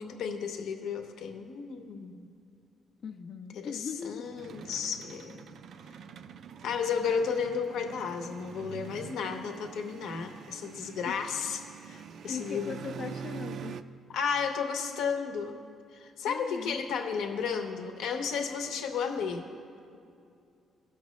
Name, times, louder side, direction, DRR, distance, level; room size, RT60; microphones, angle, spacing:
voice 1, 0.0-2.2 3.6-5.6 6.6-11.6 11.9-12.7 14.1-15.6 16.0-19.5, left 6 dB, 85° left, 5 dB, 0.8 m, -33 dB
voice 2, 3.0-4.3 11.0-11.1 12.3-13.8 16.3-16.8, left 6 dB, 60° left, 5 dB, 0.4 m, -39 dB
sound 1, 4.2-13.8, right 7 dB, 65° right, 0.3 m, -45 dB
16.5 x 6.0 x 3.1 m, 2.5 s
cardioid pair, 90°, 0 cm